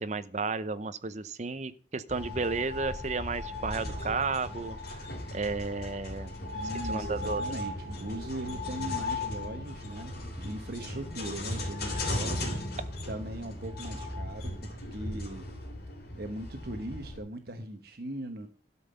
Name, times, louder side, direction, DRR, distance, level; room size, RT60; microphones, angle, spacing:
voice 1, 0.0-6.3 6.9-7.6, right 4 dB, 40° right, 12 dB, 0.7 m, -33 dB
sound 1, 2.1-17.2, left 2 dB, 60° left, 3.2 m, -37 dB
voice 2, 6.2-12.6 13.1-15.5 16.2-18.5, right 1 dB, 60° right, 6 dB, 1.1 m, -40 dB
12.5 x 5.5 x 6.8 m, 0.40 s
head